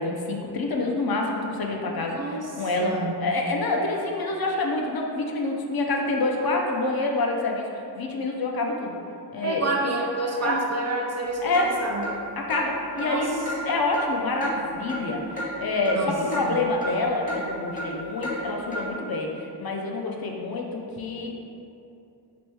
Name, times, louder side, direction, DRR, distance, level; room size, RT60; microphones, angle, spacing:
voice 1, 0.0-8.9 9.3-9.6 10.4-10.6 11.4-11.7 12.4-13.3 13.6-21.4, left 2 dB, 60° left, 0 dB, 0.5 m, -27 dB
voice 2, 2.1-2.4 2.8-3.2 9.4-12.0 13.0-13.3 15.9-16.6, right 2 dB, 40° right, 0 dB, 0.4 m, -28 dB
Clock, 11.5-11.7 12.0-12.1 12.5-12.6 13.0-13.1 13.5-13.6 13.9-14.1 14.4-14.5 14.9-15.0 15.4-15.5 15.9-16.0 16.3-16.4 16.8-16.9 17.3-17.4 17.8-17.9 18.2-18.4 18.7-18.8, equal, 20° left, 0.8 m, -31 dB
3.0 x 3.0 x 3.3 m, 2.7 s
wide cardioid pair, 80°, 42 cm